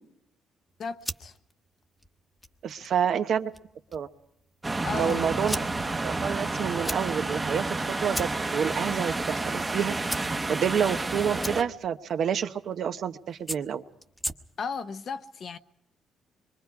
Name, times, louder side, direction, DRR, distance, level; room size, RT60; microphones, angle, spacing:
sound 1, 0.7-14.8, equal, 5° left, 1.1 m, -42 dB
voice 1, 0.8-1.3 4.8-5.3 14.6-15.6, left 5 dB, 55° left, 0.9 m, -34 dB
voice 2, 2.6-3.5 3.9-4.1 4.9-5.6 6.0-9.9 10.5-13.8, right 8 dB, 65° right, 0.9 m, -28 dB
sound 2, 4.6-11.6, right 2 dB, 20° right, 1.1 m, -30 dB
26.5 x 23.0 x 4.8 m
cardioid pair, 90°, 0 cm